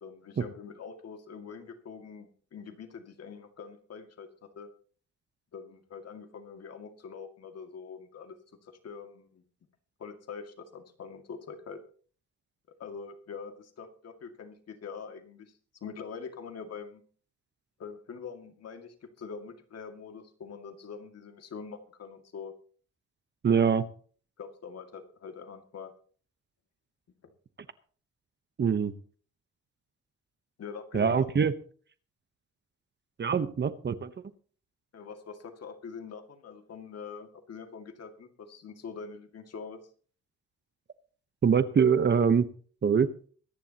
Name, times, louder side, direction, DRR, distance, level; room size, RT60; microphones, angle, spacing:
voice 1, 0.0-4.3 4.6-4.7 5.5-8.4 8.6-9.4 10.0-11.8 12.8-15.5 15.8-17.0 17.8-22.5 23.5-23.7 24.4-25.9 30.6-31.3 34.9-39.8, left 5 dB, 55° left, 6 dB, 2.2 m, -44 dB
voice 2, 23.4-23.8 28.6-28.9 30.9-31.5 33.2-34.1 41.4-42.5 42.8-43.1, right 6 dB, 35° right, 13 dB, 1.0 m, -23 dB
23.5 x 10.5 x 2.9 m, 0.43 s
cardioid pair, 90°, 30 cm